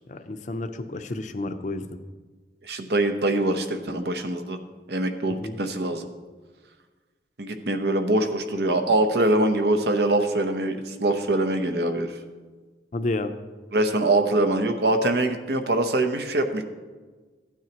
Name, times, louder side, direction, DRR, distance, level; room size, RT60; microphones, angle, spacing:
voice 1, 0.1-1.9 5.3-5.6 12.9-13.3, left 2 dB, 45° left, 8 dB, 0.6 m, -30 dB
voice 2, 2.6-4.6 4.9-6.1 7.4-12.2 13.7-16.6, right 2 dB, 65° right, 7 dB, 0.8 m, -23 dB
14.5 x 9.3 x 2.9 m, 1.4 s
head